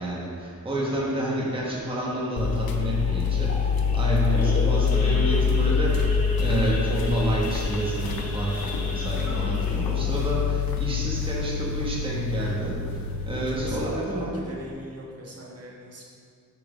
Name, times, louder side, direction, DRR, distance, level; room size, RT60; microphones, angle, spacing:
voice 1, 0.0-6.1 6.4-14.4, right 1 dB, 15° right, -5 dB, 1.2 m, -29 dB
Idling / Accelerating revving vroom / Sawing, 0.8-11.9 12.3-12.5 12.7-12.8 13.3-13.6 14.0-14.1 14.3-14.7, equal, 45° left, 1.4 m, -36 dB
sound 1, 2.4-14.0, left 6 dB, 85° left, 0.7 m, -26 dB
voice 2, 9.1-9.6 13.3-16.0, equal, 45° right, -3 dB, 1.5 m, -39 dB
8.7 x 4.5 x 6.2 m, 2.2 s
wide cardioid pair, 165°, 35 cm